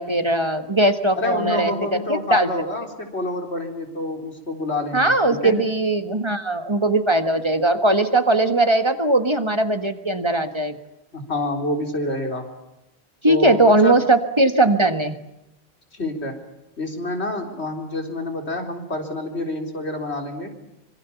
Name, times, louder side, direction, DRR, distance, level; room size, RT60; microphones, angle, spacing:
voice 1, 0.0-2.5 4.9-10.8 13.2-15.2, right 2 dB, 25° right, 8 dB, 1.6 m, -19 dB
voice 2, 1.1-5.5 11.1-12.4 13.2-14.0 15.9-16.3 16.8-20.5, left 2 dB, 90° left, 3 dB, 4.2 m, -27 dB
26.0 x 24.0 x 7.1 m, 0.89 s
omnidirectional pair, 1.1 m